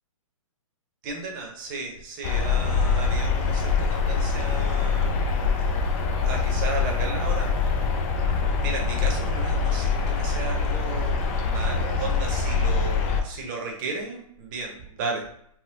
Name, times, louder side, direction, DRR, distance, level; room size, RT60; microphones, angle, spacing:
voice 1, 1.0-5.4 6.2-7.5 8.6-15.2, right 4 dB, 35° right, 1 dB, 0.8 m, -34 dB
sound 1, 2.2-13.2, left 5 dB, 25° left, 0.4 m, -24 dB
3.5 x 2.2 x 2.8 m, 0.68 s
hypercardioid pair, 145°, 18 cm